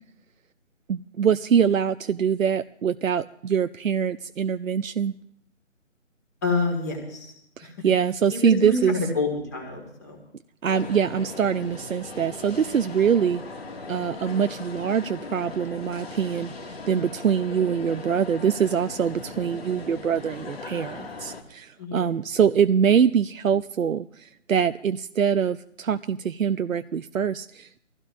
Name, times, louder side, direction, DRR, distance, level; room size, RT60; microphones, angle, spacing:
voice 1, 0.9-5.1 7.6-8.9 10.6-13.4 13.9-27.8, right 7 dB, 85° right, 10 dB, 0.6 m, -24 dB
voice 2, 6.4-7.3 7.6-7.7 8.3-10.2 21.8-22.0, left 3 dB, 15° left, 1 dB, 1.7 m, -27 dB
sound 1, 10.7-21.4, left 3 dB, 50° left, 2.0 m, -39 dB
24.0 x 15.5 x 2.5 m, 0.68 s
figure-of-eight pair, 165°, 39 cm